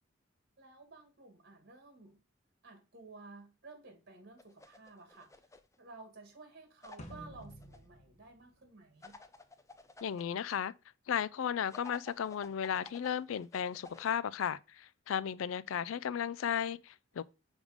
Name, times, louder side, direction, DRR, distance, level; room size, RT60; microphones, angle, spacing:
voice 1, 0.6-2.2 2.6-5.5 5.8-9.2, right 3 dB, 55° right, 1.8 m, -54 dB
sound 1, 4.4-5.8 6.8-7.8 9.0-10.2 11.7-14.1, left 3 dB, 15° left, 0.5 m, -54 dB
sound 2, 7.0-9.4, equal, 35° left, 1.3 m, -52 dB
voice 2, 10.0-10.7 11.1-17.2, left 8 dB, 90° left, 0.4 m, -35 dB
6.3 x 3.6 x 5.0 m
head